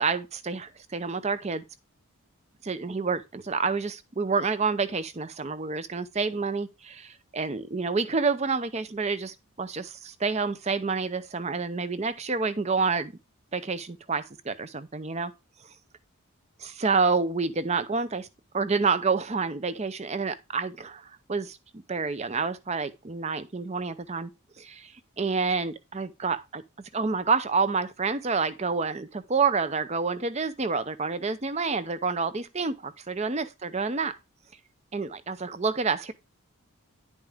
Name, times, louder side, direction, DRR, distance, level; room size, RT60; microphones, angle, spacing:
voice 1, 0.0-1.6 2.6-13.1 13.5-15.3 16.6-18.3 18.5-24.3 24.6-26.6 26.9-34.2 34.9-36.1, right 4 dB, 30° right, 0.6 m, -28 dB
10.5 x 5.4 x 3.5 m
head